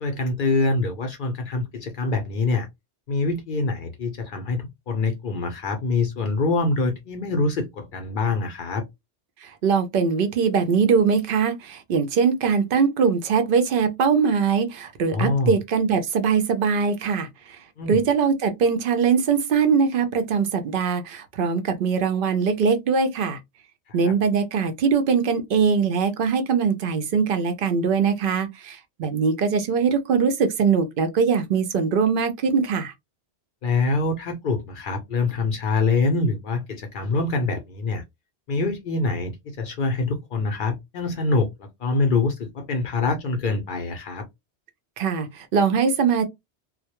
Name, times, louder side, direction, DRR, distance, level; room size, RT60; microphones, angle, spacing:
voice 1, 0.0-2.7 3.1-8.8 15.1-15.6 17.8-18.0 23.9-24.1 33.6-38.0 38.5-44.3, left 3 dB, 60° left, 0.6 m, -25 dB
voice 2, 9.4-17.3 17.9-23.4 23.9-32.9 45.0-46.3, right 5 dB, 60° right, 0.6 m, -22 dB
2.2 x 2.0 x 2.8 m
omnidirectional pair, 1.2 m